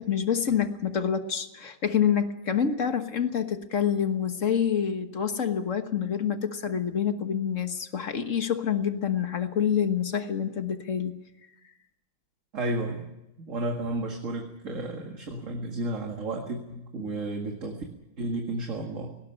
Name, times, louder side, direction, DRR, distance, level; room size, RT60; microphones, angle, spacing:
voice 1, 0.0-11.2, left 8 dB, 45° left, 8 dB, 1.5 m, -27 dB
voice 2, 12.5-13.1 13.4-17.8 18.2-19.2, right 2 dB, 40° right, 2 dB, 2.2 m, -32 dB
18.0 x 18.0 x 9.8 m, 0.93 s
omnidirectional pair, 2.1 m